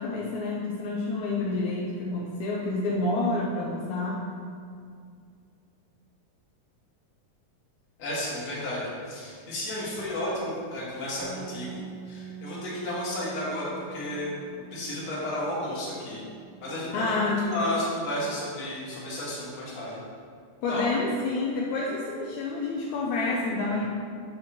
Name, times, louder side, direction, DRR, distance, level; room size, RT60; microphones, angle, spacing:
voice 1, 0.0-4.2 16.9-17.5 20.6-23.9, left 3 dB, 75° left, -4 dB, 1.8 m, -28 dB
voice 2, 8.0-16.2 16.6-17.2 17.4-20.0 20.7-20.8, left 1 dB, 55° left, -7 dB, 2.7 m, -32 dB
Bass guitar, 11.2-17.4, right 8 dB, 65° right, 2.2 m, -45 dB
7.0 x 3.5 x 5.8 m, 2.3 s
omnidirectional pair, 3.8 m